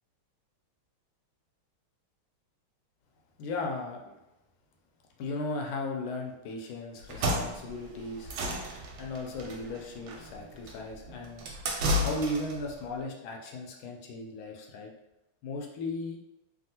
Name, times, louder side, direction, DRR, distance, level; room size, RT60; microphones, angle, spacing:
voice 1, 3.4-4.1 5.2-8.4 9.0-11.4 12.0-14.9 15.4-16.2, left 2 dB, 80° left, 1 dB, 1.3 m, -36 dB
sound 1, 7.0-12.7, left 1 dB, 75° right, 1.3 m, -32 dB
3.4 x 2.3 x 2.7 m, 0.94 s
omnidirectional pair, 2.4 m